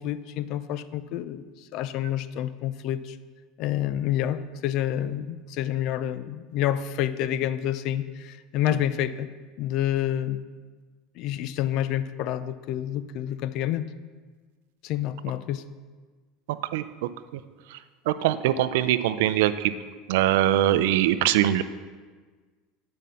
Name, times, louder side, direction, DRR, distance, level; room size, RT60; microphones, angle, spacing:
voice 1, 0.0-3.2 3.6-9.3 9.6-10.4 11.2-13.9 14.8-15.7, left 11 dB, 60° left, 14 dB, 0.4 m, -28 dB
voice 2, 18.1-19.7 20.1-21.6, right 12 dB, 80° right, 13 dB, 0.4 m, -22 dB
9.4 x 5.3 x 5.6 m, 1.4 s
supercardioid pair, 115°, 0 cm